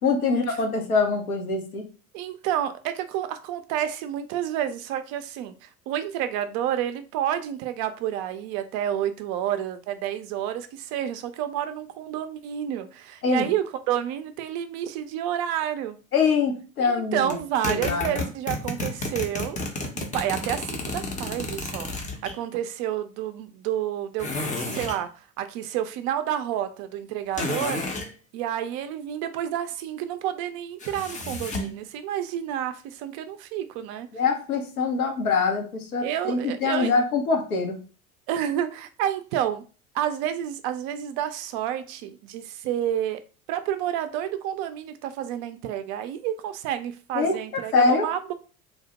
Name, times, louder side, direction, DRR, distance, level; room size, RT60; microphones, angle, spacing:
voice 1, 0.0-1.8 13.2-13.5 16.1-17.4 17.7-18.2 34.1-37.8 47.1-48.1, left 4 dB, 80° left, 0.8 m, -24 dB
voice 2, 2.1-16.0 16.8-19.6 19.9-27.8 28.3-34.1 36.0-36.9 38.3-39.6 39.9-43.2 43.5-48.3, right 10 dB, 45° right, 0.4 m, -29 dB
sound 1, 17.3-22.3 24.2-25.0 27.3-28.1 30.8-31.8, left 2 dB, 20° left, 0.5 m, -31 dB
2.9 x 2.0 x 2.8 m
figure-of-eight pair, 70°, 42 cm